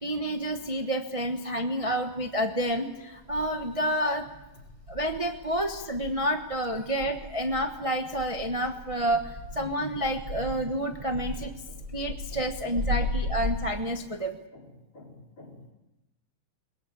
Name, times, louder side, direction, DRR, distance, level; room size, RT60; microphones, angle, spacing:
voice 1, 0.0-4.3 4.9-11.5 11.9-14.4, equal, 20° right, 5 dB, 0.9 m, -29 dB
sound 1, 2.7-2.8 3.3-3.9 4.4-13.6, left 1 dB, 55° right, 5.4 m, -36 dB
voice 2, 11.3-13.0 13.9-14.0 14.5-14.7 14.9-15.7, left 2 dB, 60° left, -1 dB, 5.1 m, -51 dB
22.0 x 21.0 x 8.5 m, 1.0 s
omnidirectional pair, 2.3 m